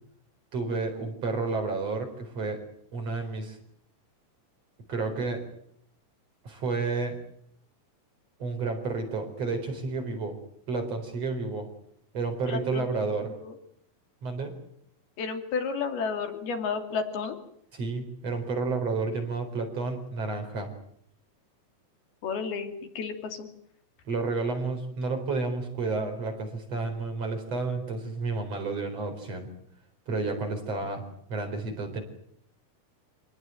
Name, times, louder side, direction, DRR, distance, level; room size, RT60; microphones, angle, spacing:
voice 1, 0.5-2.6 2.9-3.6 4.9-5.4 6.4-7.2 8.4-10.4 10.7-11.7 12.1-13.3 14.2-14.6 17.7-20.7 24.1-29.5 30.1-31.0 31.3-32.0, right 3 dB, 40° right, 5 dB, 5.2 m, -31 dB
voice 2, 12.5-12.9 13.2-13.5 15.2-17.4 22.2-23.5, left 5 dB, 80° left, 5 dB, 4.8 m, -32 dB
27.0 x 19.0 x 9.2 m, 0.71 s
omnidirectional pair, 4.4 m